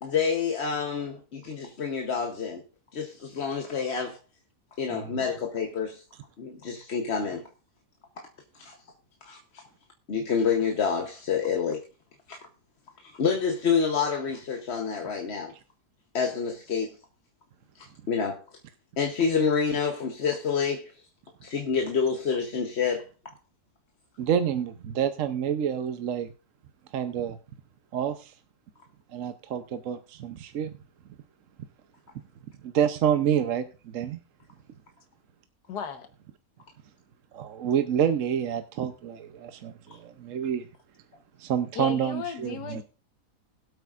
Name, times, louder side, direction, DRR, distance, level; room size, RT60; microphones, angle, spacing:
voice 1, 0.0-2.6 2.9-4.2 4.8-6.0 6.4-7.4 8.2-8.3 8.6-8.8 9.2-9.6 10.1-11.8 12.3-12.4 13.0-15.5 16.1-16.9 17.8-18.4 19.0-20.9 21.4-23.1, left 6 dB, 45° left, 1.1 m, -28 dB
voice 2, 24.2-26.3 26.9-27.4 27.9-28.3 29.1-30.7 32.6-33.7 33.9-34.2 37.3-40.7 41.4-42.8, right 9 dB, 60° right, 1.0 m, -28 dB
voice 3, 35.7-36.1 41.7-42.8, left 8 dB, 85° left, 1.7 m, -35 dB
21.0 x 8.3 x 2.5 m
omnidirectional pair, 1.7 m